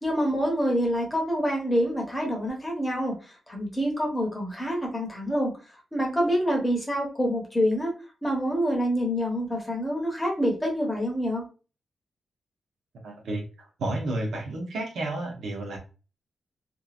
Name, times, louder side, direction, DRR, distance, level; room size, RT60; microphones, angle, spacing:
voice 1, 0.0-3.2 3.5-5.5 5.9-7.9 8.2-11.4, equal, 10° left, -1 dB, 1.1 m, -26 dB
voice 2, 13.0-13.4 13.8-15.8, right 2 dB, 85° right, 1 dB, 1.0 m, -31 dB
2.9 x 2.5 x 2.5 m, 0.34 s
wide cardioid pair, 140°, 0 cm